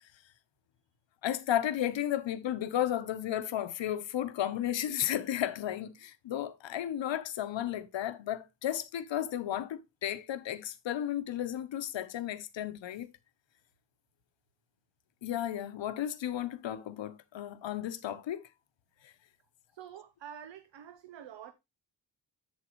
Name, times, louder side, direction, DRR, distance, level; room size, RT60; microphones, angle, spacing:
voice 1, 1.2-13.1 15.2-18.4 19.0-19.1, left 11 dB, 80° left, 1.0 m, -33 dB
voice 2, 19.7-21.5, right 9 dB, 75° right, 0.8 m, -47 dB
7.9 x 7.5 x 3.0 m
wide cardioid pair, 165°, 44 cm